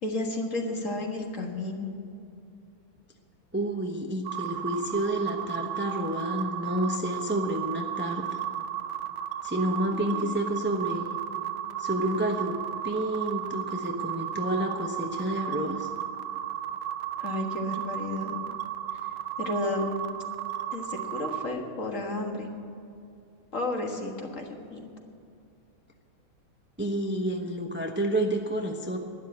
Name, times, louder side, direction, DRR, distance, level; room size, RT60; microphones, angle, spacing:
voice 1, 0.0-1.9 9.9-10.4 17.2-18.4 19.4-19.9 20.7-22.5 23.5-24.4 24.7-24.9, left 2 dB, 40° left, 2 dB, 1.8 m, -32 dB
voice 2, 3.5-8.4 9.4-11.1 11.8-15.9 26.8-29.0, right 1 dB, 20° right, 3 dB, 0.3 m, -29 dB
sound 1, 4.2-21.5, right 11 dB, 90° right, 1.5 m, -34 dB
12.0 x 10.5 x 9.4 m, 2.5 s
omnidirectional pair, 2.2 m